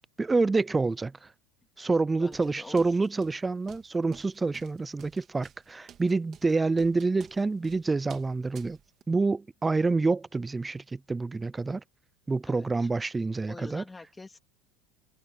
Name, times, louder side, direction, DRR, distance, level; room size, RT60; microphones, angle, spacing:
voice 1, 0.2-1.3 1.8-8.8 9.1-11.8 12.3-13.8, right 3 dB, 15° right, 0.3 m, -27 dB
voice 2, 2.1-3.1 12.4-12.9 13.5-14.4, left 3 dB, 10° left, 3.0 m, -46 dB
sound 1, 2.3-9.0, right 10 dB, 35° right, 3.1 m, -52 dB
supercardioid pair, 135°, 0 cm